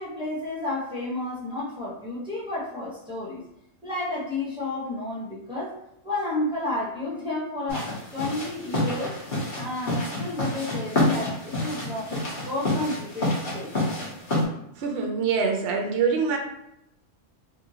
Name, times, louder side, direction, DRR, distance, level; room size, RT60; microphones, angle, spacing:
voice 1, 0.0-3.4 3.8-5.7 6.0-9.2 9.5-13.7, left 2 dB, 5° right, -8 dB, 0.8 m, -31 dB
sound 1, 7.7-14.4, left 1 dB, 45° left, 1.0 m, -28 dB
voice 2, 14.8-16.4, right 5 dB, 60° right, 2 dB, 0.7 m, -24 dB
2.8 x 2.6 x 2.7 m, 0.81 s
omnidirectional pair, 1.3 m